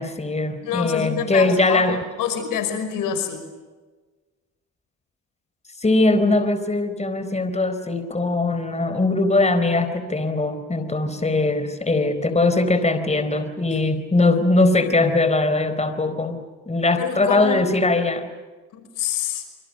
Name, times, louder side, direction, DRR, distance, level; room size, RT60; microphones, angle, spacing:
voice 1, 0.0-2.0 5.8-16.4 16.7-18.2, left 2 dB, 20° left, 10 dB, 4.2 m, -21 dB
voice 2, 0.6-3.4 17.0-17.6 18.7-19.4, left 8 dB, 85° left, 8 dB, 5.5 m, -27 dB
27.5 x 26.0 x 6.6 m, 1.3 s
cardioid pair, 80°, 32 cm